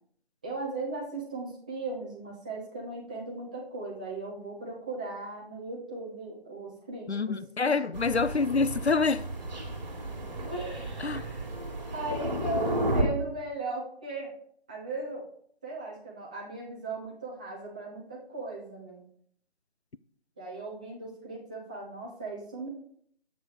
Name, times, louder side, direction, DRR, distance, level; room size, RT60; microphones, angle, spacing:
voice 1, 0.4-7.1 7.7-7.8 10.5-11.5 11.9-14.3 14.7-15.2 15.6-19.0 20.4-22.7, right 2 dB, 5° right, 0.9 m, -37 dB
voice 2, 7.1-9.3 11.0-11.2, left 4 dB, 75° left, 0.7 m, -26 dB
Thunder, 7.9-13.0, right 2 dB, 40° right, 3.0 m, -33 dB
9.9 x 8.5 x 4.9 m
figure-of-eight pair, 155°, 33 cm